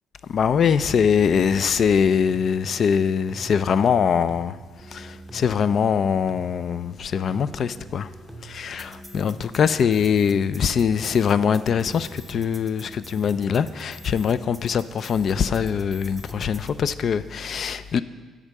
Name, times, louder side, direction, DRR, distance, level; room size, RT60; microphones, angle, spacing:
voice 1, 0.3-4.6 4.9-8.1 8.4-18.0, left 7 dB, 60° left, 0.3 m, -22 dB
sound 1, 0.8-16.8, right 2 dB, 5° right, 0.7 m, -43 dB
9.9 x 3.6 x 6.6 m
cardioid pair, 90°, 0 cm